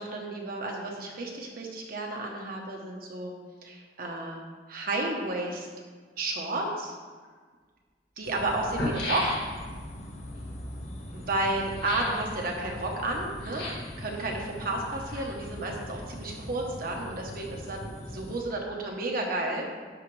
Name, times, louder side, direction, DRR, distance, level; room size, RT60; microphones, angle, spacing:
voice 1, 0.0-3.3 3.6-4.4 4.7-5.7 6.2-6.9 8.2-9.4 11.1-13.7 14.0-19.6, right 2 dB, 55° right, 0 dB, 1.1 m, -32 dB
sound 1, 7.2-7.3 8.2-8.3 8.5-9.8 11.7-12.2 13.4-14.0 14.8-15.6 15.9-16.0, left 1 dB, 65° left, 1.9 m, -34 dB
sound 2, 8.2-18.4, equal, 40° left, 0.8 m, -41 dB
12.0 x 4.9 x 3.3 m, 1.5 s
head